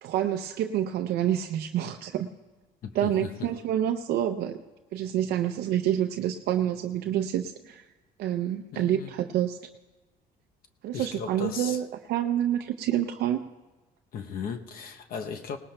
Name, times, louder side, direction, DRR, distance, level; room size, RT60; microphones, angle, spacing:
voice 1, 0.0-2.3 2.9-4.6 4.9-7.8 8.2-9.6 10.8-13.5, right 11 dB, 75° right, 5 dB, 0.5 m, -28 dB
voice 2, 2.8-3.5 8.7-9.1 10.9-11.8 14.1-15.6, left 6 dB, 60° left, 6 dB, 0.8 m, -36 dB
19.0 x 18.5 x 2.2 m, 1.2 s
cardioid pair, 110°, 17 cm